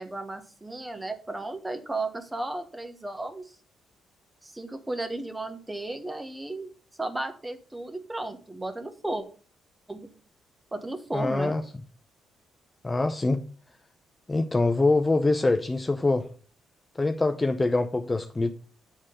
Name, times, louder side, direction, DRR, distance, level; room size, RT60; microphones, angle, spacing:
voice 1, 0.0-3.5 4.4-6.7 7.0-9.2 9.9-10.1 10.7-11.5, right 2 dB, 15° right, 1.2 m, -34 dB
voice 2, 11.1-11.6 12.8-13.4 14.3-16.3 17.0-18.5, left 2 dB, 20° left, 0.6 m, -24 dB
8.6 x 3.7 x 6.5 m
cardioid pair, 90°, 0 cm